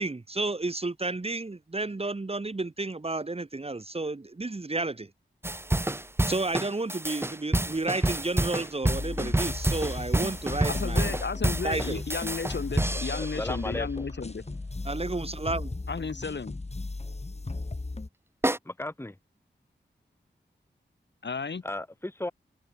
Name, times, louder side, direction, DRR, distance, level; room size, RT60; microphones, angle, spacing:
voice 1, 0.0-5.1 6.3-11.2 11.6-12.0 14.8-15.7, right 2 dB, 30° right, 1.3 m, -31 dB
sound 1, 5.4-13.6 18.4-18.6, right 1 dB, 10° right, 0.9 m, -28 dB
sound 2, 8.8-18.1, left 2 dB, 35° left, 2.6 m, -36 dB
voice 2, 10.7-14.4 15.9-16.5 21.2-21.6, left 5 dB, 70° left, 3.3 m, -33 dB
voice 3, 13.2-14.1 18.6-19.1 21.6-22.3, left 1 dB, 10° left, 1.6 m, -35 dB
cardioid pair, 50°, 19 cm